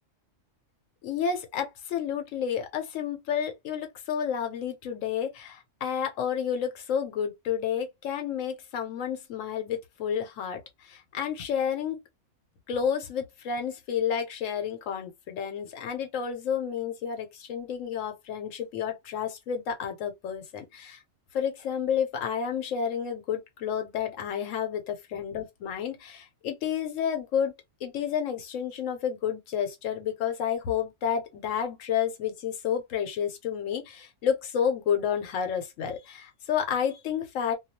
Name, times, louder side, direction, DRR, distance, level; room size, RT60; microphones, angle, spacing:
voice 1, 1.0-12.0 12.7-21.0 21.3-27.5 27.8-37.6, left 8 dB, 90° left, 1.1 m, -30 dB
2.3 x 2.2 x 2.7 m
omnidirectional pair, 1.3 m